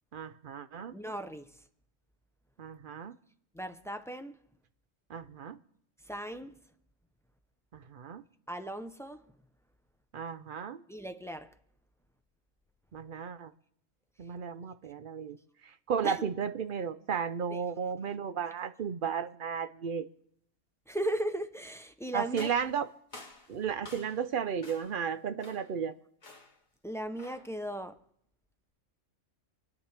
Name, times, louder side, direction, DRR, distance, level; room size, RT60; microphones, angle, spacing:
voice 1, 0.1-0.9 2.6-3.2 5.1-5.6 7.7-8.2 10.1-10.8 12.9-13.5 14.2-15.4 15.6-20.1 22.1-22.9 23.5-25.9, right 7 dB, 55° right, 0.7 m, -34 dB
voice 2, 0.9-1.6 3.5-4.4 6.0-6.6 8.5-9.2 10.9-11.5 16.0-16.2 17.5-17.6 20.9-22.5 26.8-28.0, right 1 dB, 5° left, 0.3 m, -37 dB
sound 1, 22.3-24.3 24.6-25.0 25.4-25.8 26.2-26.6 27.2-27.6, left 2 dB, 35° left, 1.9 m, -50 dB
27.0 x 9.6 x 3.3 m
omnidirectional pair, 1.3 m